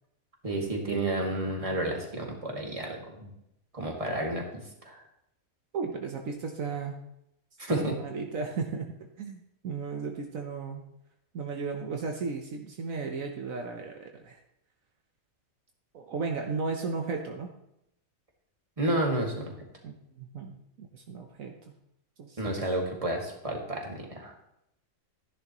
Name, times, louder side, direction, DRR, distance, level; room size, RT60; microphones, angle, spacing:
voice 1, 0.4-3.3 3.7-5.0 7.6-7.9 18.8-19.5 22.4-24.3, right 1 dB, 25° right, 0 dB, 2.2 m, -31 dB
voice 2, 5.7-7.0 7.7-10.8 11.3-14.4 15.9-17.5 19.8-21.5 22.2-22.6, right 4 dB, 70° right, 3 dB, 1.4 m, -35 dB
14.5 x 10.5 x 3.0 m, 0.80 s
omnidirectional pair, 1.5 m